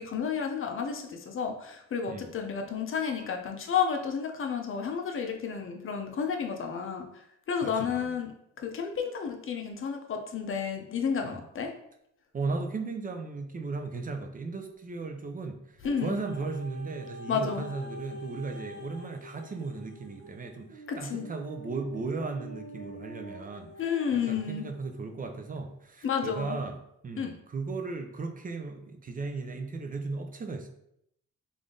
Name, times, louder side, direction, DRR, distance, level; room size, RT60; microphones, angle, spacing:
voice 1, 0.0-7.1 7.5-8.3 8.6-11.7 15.8-16.2 17.3-17.7 20.9-21.3 23.8-24.7 26.0-26.6 27.2-27.3, left 6 dB, 45° left, 4 dB, 0.7 m, -31 dB
voice 2, 7.6-8.2 11.2-11.4 12.3-26.8 27.0-30.7, right 3 dB, 30° right, 4 dB, 0.5 m, -36 dB
sound 1, 15.8-24.9 25.6-25.7, right 1 dB, 60° right, 0.9 m, -46 dB
3.5 x 2.6 x 3.7 m, 0.75 s
cardioid pair, 90°, 30 cm